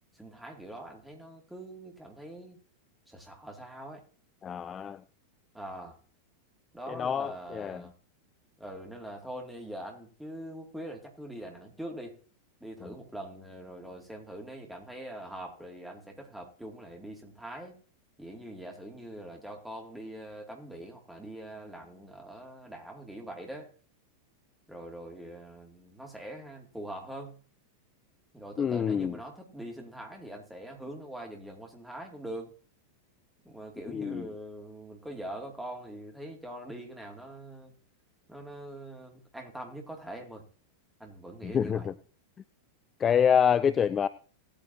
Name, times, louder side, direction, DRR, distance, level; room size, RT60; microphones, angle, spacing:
voice 1, 0.1-2.6 3.1-4.0 5.5-6.0 6.7-7.9 8.6-12.2 12.6-17.8 18.2-23.7 24.7-27.4 28.3-32.5 33.4-37.7 38.3-40.4 41.0-41.9, right 1 dB, 5° right, 2.5 m, -43 dB
voice 2, 4.4-5.0 6.9-7.8 28.6-29.1 33.9-34.3 41.4-41.9 43.0-44.1, left 8 dB, 25° left, 0.5 m, -26 dB
18.0 x 8.8 x 2.8 m
figure-of-eight pair, 90°, 0 cm